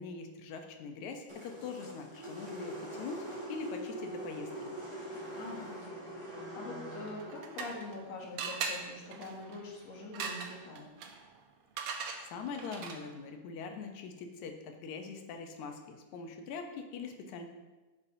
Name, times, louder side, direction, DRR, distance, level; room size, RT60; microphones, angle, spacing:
voice 1, 0.0-4.5 11.8-12.0 12.3-17.5, left 5 dB, 80° left, 4 dB, 2.2 m, -42 dB
sound 1, 1.3-9.6, right 1 dB, 15° right, 0.9 m, -44 dB
voice 2, 5.4-5.9 6.5-10.9, left 2 dB, 65° left, -3 dB, 2.6 m, -44 dB
sound 2, 7.1-8.0 8.4-13.2, right 5 dB, 80° right, 1.2 m, -41 dB
9.7 x 7.5 x 2.7 m, 1.2 s
omnidirectional pair, 3.3 m